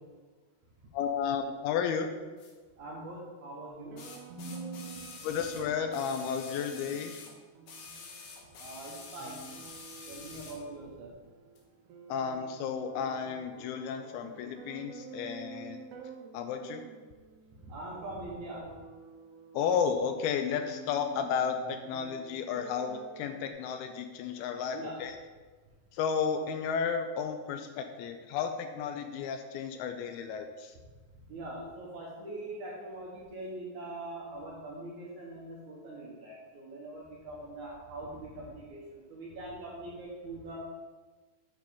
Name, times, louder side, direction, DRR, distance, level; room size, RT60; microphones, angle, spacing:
voice 1, 0.9-2.1 5.2-7.2 12.1-15.8 16.3-16.8 19.5-25.2 25.9-30.7, left 7 dB, 80° left, 7 dB, 2.4 m, -33 dB
sound 1, 2.4-2.5 4.0-7.4 7.7-10.6 11.6-11.7, left 4 dB, 65° left, 2.2 m, -47 dB
voice 2, 2.8-4.0 4.3-5.1 8.6-9.4 10.1-11.1 17.7-18.6 24.7-24.9 31.3-40.6, right 2 dB, 70° right, -4 dB, 1.9 m, -42 dB
sound 2, 3.7-23.5, right 5 dB, 85° right, 3.0 m, -50 dB
8.9 x 3.9 x 5.5 m, 1.4 s
omnidirectional pair, 4.6 m